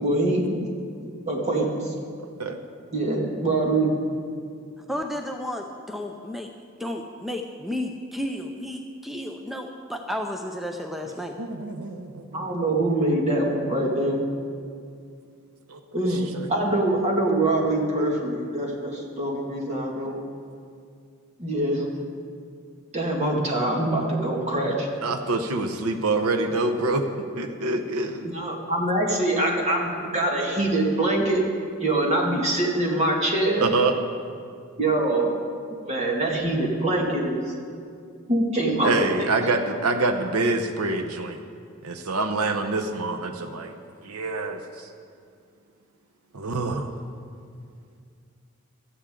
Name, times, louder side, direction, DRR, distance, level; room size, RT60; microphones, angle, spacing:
voice 1, 0.0-0.7 1.3-1.9 2.9-3.9 12.3-14.2 15.9-20.2 21.4-21.9 22.9-24.9 28.2-31.5 31.8-33.7 34.8-35.4 35.8-37.4 38.3-38.9 39.2-39.3, right 1 dB, 30° right, -1 dB, 2.0 m, -24 dB
voice 2, 2.2-2.6 11.4-12.6 15.7-15.8 16.1-16.5 25.0-27.1 27.4-28.3 33.6-33.9 38.8-41.4 41.8-43.8 44.0-44.9 46.3-46.9, right 3 dB, 85° right, 6 dB, 0.9 m, -26 dB
voice 3, 4.9-6.5 6.8-11.3, left 1 dB, ahead, 3 dB, 0.5 m, -32 dB
17.0 x 12.5 x 3.8 m, 2.3 s
head